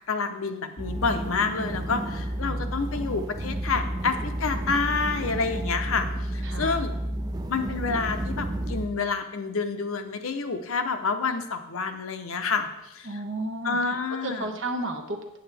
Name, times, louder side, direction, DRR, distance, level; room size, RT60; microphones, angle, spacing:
voice 1, 0.0-6.9 7.5-13.1 13.6-14.5, left 4 dB, 75° left, 8 dB, 0.7 m, -28 dB
sound 1, 0.8-8.9, right 1 dB, 20° right, 0.5 m, -31 dB
voice 2, 2.4-3.0 6.4-6.8 13.0-15.4, right 2 dB, 60° right, 4 dB, 1.1 m, -34 dB
8.3 x 8.0 x 3.3 m, 0.90 s
head